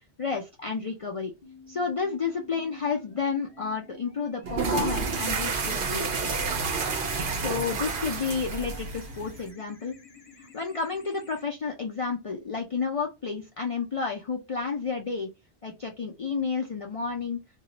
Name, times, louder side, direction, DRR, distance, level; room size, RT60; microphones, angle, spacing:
voice 1, 0.2-1.3 1.7-6.4 7.3-10.0 10.4-15.3 15.6-17.4, left 5 dB, 65° left, 0 dB, 0.3 m, -31 dB
sound 1, 1.4-11.4, left 5 dB, 40° left, 0.7 m, -50 dB
sound 2, 4.4-9.5, right 4 dB, 60° right, 0.6 m, -29 dB
2.2 x 2.0 x 3.7 m, 0.24 s
omnidirectional pair, 1.1 m